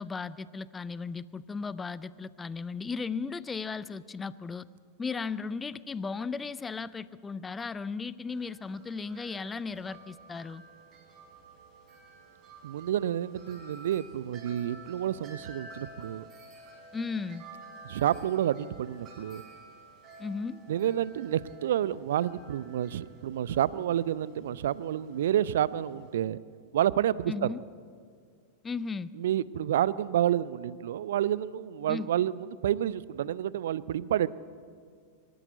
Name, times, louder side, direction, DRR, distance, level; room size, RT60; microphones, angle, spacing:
voice 1, 0.0-4.7 5.0-10.6 16.9-17.4 20.2-20.6 27.3-27.6 28.6-29.1 31.9-32.1, left 4 dB, 15° left, 18 dB, 0.5 m, -36 dB
Wind chime, 8.3-26.2, right 3 dB, 30° right, 4.6 m, -51 dB
voice 2, 12.6-16.2 17.8-19.4 20.7-26.4 26.7-27.5 29.2-34.3, right 11 dB, 60° right, 20 dB, 0.5 m, -29 dB
25.0 x 13.5 x 8.1 m, 2.1 s
figure-of-eight pair, 90°, 0 cm